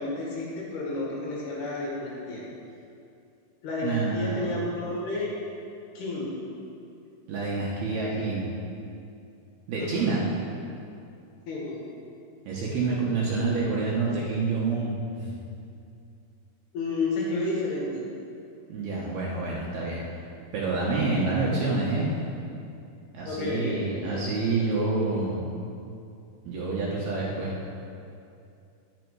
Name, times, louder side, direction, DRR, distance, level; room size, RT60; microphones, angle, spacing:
voice 1, 0.0-2.4 3.6-5.3 5.9-6.3 9.8-10.1 11.5-11.8 16.7-18.0 23.2-24.3, left 2 dB, 60° left, -4 dB, 3.3 m, -31 dB
voice 2, 3.8-4.4 7.3-8.5 9.7-10.2 12.5-14.9 15.2-15.3 18.7-20.2 20.5-22.1 23.1-25.5 26.5-27.5, right 3 dB, 70° right, -5 dB, 2.6 m, -27 dB
11.0 x 10.5 x 4.8 m, 2.6 s
omnidirectional pair, 5.7 m